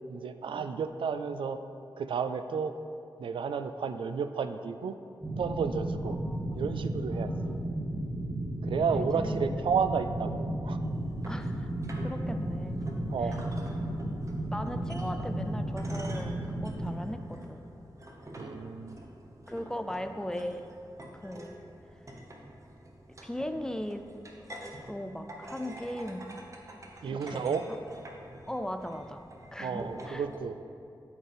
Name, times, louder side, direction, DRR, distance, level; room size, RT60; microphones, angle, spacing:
voice 1, 0.1-1.6 2.0-2.7 3.2-5.0 5.4-6.2 6.5-7.6 8.6-10.8 13.1-13.4 18.4-19.0 27.0-27.7 29.6-30.6, right 6 dB, 85° right, 9 dB, 0.3 m, -32 dB
sound 1, 5.2-16.9, right 1 dB, 15° right, 1.6 m, -34 dB
voice 2, 6.0-6.6 7.1-7.5 8.9-9.3 11.3-11.7 12.0-12.8 14.5-17.6 19.5-20.7 21.1-21.6 23.2-24.1 24.9-26.4 27.1-27.8 28.5-29.2 29.5-30.2, equal, 5° left, 8 dB, 0.4 m, -38 dB
sound 2, 10.8-30.4, right 1 dB, 40° right, 0.9 m, -47 dB
12.5 x 4.4 x 3.4 m, 2.5 s
wide cardioid pair, 75°, 8 cm